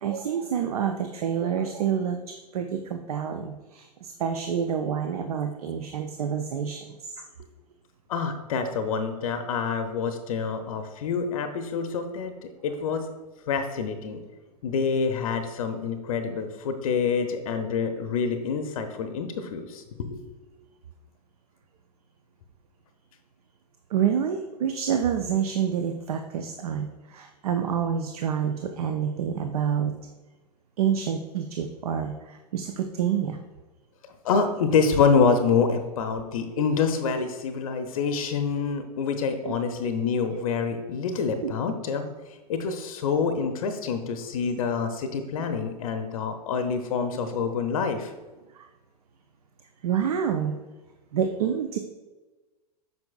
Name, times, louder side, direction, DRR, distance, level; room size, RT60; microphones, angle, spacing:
voice 1, 0.0-7.1 8.5-8.7 23.9-29.9 30.8-33.4 36.6-36.7 39.4-39.6 40.0-40.4 41.4-41.5 47.1-47.3 48.5-48.7 49.8-50.6 51.1-51.8, right 8 dB, 65° right, 6 dB, 0.5 m, -28 dB
voice 2, 8.1-12.3 12.6-13.1 13.5-14.2 14.6-20.2 34.2-42.1 42.5-48.1, left 5 dB, 55° left, 7 dB, 0.6 m, -26 dB
7.7 x 5.4 x 2.3 m, 1.2 s
figure-of-eight pair, 100°, 21 cm